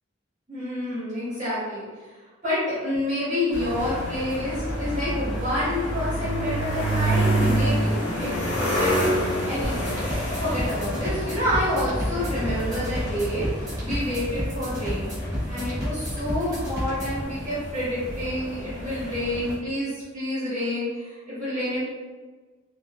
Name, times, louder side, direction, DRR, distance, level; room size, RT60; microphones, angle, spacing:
voice 1, 0.5-1.8 2.4-8.3 8.7-8.9 9.4-10.0 10.4-13.5 13.8-15.1 15.4-21.8, left 1 dB, 40° right, -11 dB, 1.4 m, -28 dB
sound 1, 3.5-19.6, right 1 dB, 40° left, 0.9 m, -28 dB
sound 2, 9.6-17.2, equal, 20° right, 1.0 m, -31 dB
4.1 x 2.2 x 2.2 m, 1.4 s
head